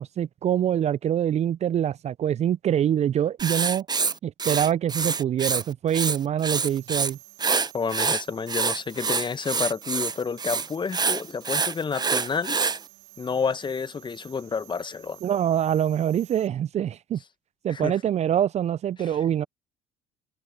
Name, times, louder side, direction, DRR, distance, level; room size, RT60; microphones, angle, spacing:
voice 1, 0.0-3.9 4.2-7.2 15.2-17.2 17.6-19.5, right 10 dB, 40° right, 0.7 m, -25 dB
Writing, 3.4-5.6 5.9-7.1 7.4-12.8, right 5 dB, 25° right, 1.2 m, -26 dB
sound 1, 6.5-16.5, right 33 dB, 70° right, 5.3 m, -51 dB
voice 2, 7.7-12.6 13.2-15.2 17.7-17.9 19.0-19.2, left 5 dB, 30° left, 1.3 m, -30 dB
hypercardioid pair, 60°, 17 cm